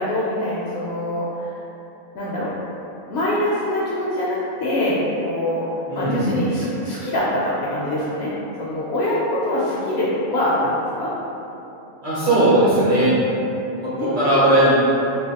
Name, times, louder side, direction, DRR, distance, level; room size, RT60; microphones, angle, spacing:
voice 1, 0.0-1.5 2.1-2.5 3.1-5.7 5.9-8.3 8.6-11.1 14.0-14.6, left 1 dB, 65° left, -7 dB, 0.7 m, -24 dB
voice 2, 5.9-6.4 12.0-13.1 13.8-14.7, right 1 dB, 45° right, -11 dB, 0.8 m, -18 dB
3.2 x 2.7 x 2.8 m, 2.9 s
omnidirectional pair, 1.4 m